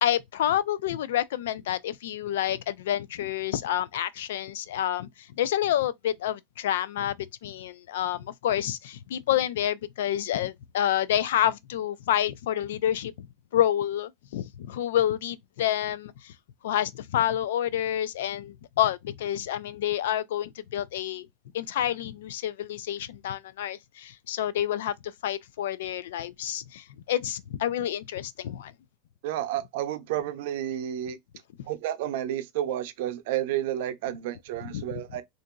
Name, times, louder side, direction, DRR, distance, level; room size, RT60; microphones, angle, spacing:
voice 1, 0.0-16.3 16.6-21.3 21.5-28.7 34.6-35.0, left 11 dB, 90° left, 0.3 m, -28 dB
voice 2, 29.2-31.2 31.7-35.2, right 12 dB, 70° right, 0.5 m, -31 dB
3.8 x 2.5 x 2.2 m
supercardioid pair, 135°, 0 cm